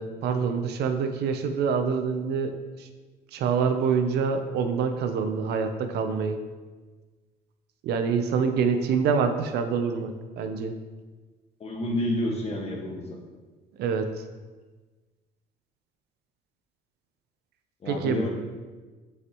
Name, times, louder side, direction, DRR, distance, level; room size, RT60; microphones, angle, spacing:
voice 1, 0.0-2.5 2.8-2.9 3.3-6.4 7.8-10.7 13.8-14.1 17.9-18.2, right 6 dB, 75° right, 7 dB, 0.7 m, -26 dB
voice 2, 11.6-13.2 17.8-18.3, left 1 dB, 35° left, 0 dB, 1.5 m, -29 dB
7.7 x 5.7 x 3.0 m, 1.3 s
cardioid pair, 110°, 17 cm